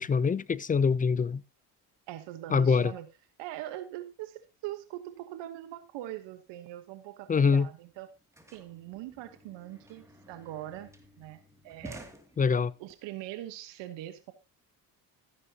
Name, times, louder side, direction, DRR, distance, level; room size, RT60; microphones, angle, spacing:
voice 1, 0.0-1.4 2.5-2.9 7.3-7.7 12.4-12.7, left 5 dB, 20° left, 0.4 m, -24 dB
voice 2, 2.1-3.1 3.4-8.1 8.5-10.9 11.2-12.1 12.8-14.3, right 14 dB, 80° right, 1.2 m, -42 dB
sound 1, 7.8-12.9, equal, 5° right, 2.4 m, -52 dB
13.5 x 9.9 x 2.8 m
supercardioid pair, 80°, 43 cm